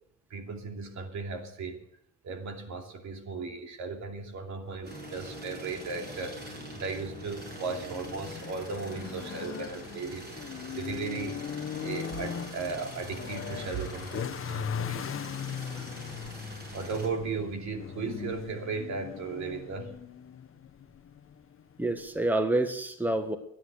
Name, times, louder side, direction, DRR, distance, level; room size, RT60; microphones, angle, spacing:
voice 1, 0.3-1.8 2.2-11.4 11.8-15.1 16.7-20.0, right 4 dB, 70° right, 4 dB, 2.9 m, -36 dB
sound 1, 4.8-17.1, right 1 dB, 35° right, 6.4 m, -45 dB
sound 2, 5.7-22.3, left 8 dB, 45° left, 1.0 m, -40 dB
voice 2, 15.6-15.9 21.8-23.4, right 2 dB, 5° right, 7 dB, 1.6 m, -28 dB
13.0 x 10.0 x 8.0 m, 0.70 s
cardioid pair, 90°, 30 cm